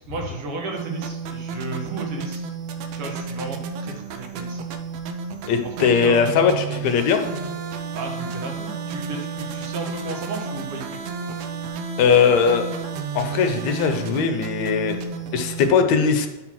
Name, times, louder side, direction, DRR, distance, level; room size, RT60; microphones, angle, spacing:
voice 1, 0.0-2.5 2.9-4.6 5.4-6.9 7.9-11.0, right 3 dB, 60° right, 1 dB, 1.9 m, -33 dB
sound 1, 0.7-15.7, right 5 dB, 75° right, 1.7 m, -32 dB
voice 2, 5.5-7.2 12.0-12.7 13.1-15.0 15.3-16.3, left 6 dB, 75° left, 6 dB, 1.9 m, -19 dB
9.4 x 4.0 x 5.9 m, 1.1 s
omnidirectional pair, 3.4 m